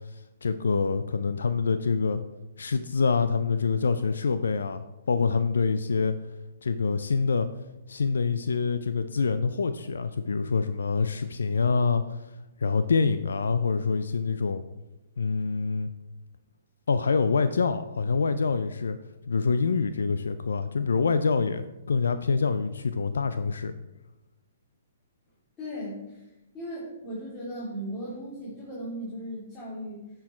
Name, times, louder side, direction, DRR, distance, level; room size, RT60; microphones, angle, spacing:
voice 1, 0.4-2.2 2.6-6.1 6.6-7.5 7.9-12.2 12.6-14.6 15.2-15.9 16.9-19.0 19.3-23.7, left 4 dB, 75° left, 11 dB, 0.4 m, -26 dB
voice 2, 25.6-26.3 26.5-30.1, equal, 20° left, -8 dB, 2.9 m, -37 dB
9.2 x 4.5 x 4.4 m, 0.98 s
hypercardioid pair, 125°, 0 cm